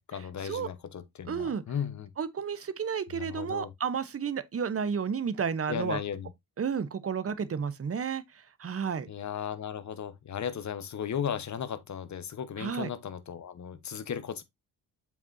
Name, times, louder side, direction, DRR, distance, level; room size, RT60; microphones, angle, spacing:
voice 1, 0.0-2.1 3.1-3.7 5.7-6.3 9.1-14.4, left 8 dB, 45° left, 1.1 m, -36 dB
voice 2, 1.3-1.6 2.2-6.0 6.6-9.1 12.6-12.9, right 6 dB, 35° right, 0.9 m, -32 dB
7.2 x 5.6 x 2.6 m
cardioid pair, 100°, 40 cm